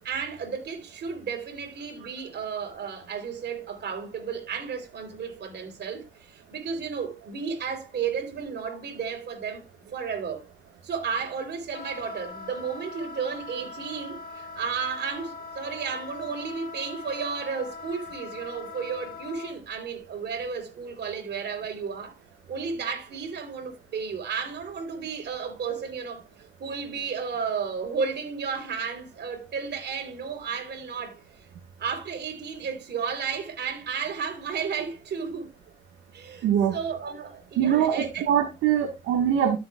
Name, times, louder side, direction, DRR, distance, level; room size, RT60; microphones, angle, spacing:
voice 1, 0.0-9.6 9.9-10.5 10.8-22.2 22.5-26.2 26.6-31.2 31.8-35.5 36.1-38.3, right 6 dB, 60° right, 3.5 m, -33 dB
Wind instrument woodwind instrument, 11.7-19.5, left 4 dB, 45° left, 2.7 m, -41 dB
voice 2, 36.4-36.8 37.6-39.6, right 9 dB, 90° right, 1.5 m, -23 dB
13.5 x 7.2 x 2.3 m
cardioid pair, 90°, 20 cm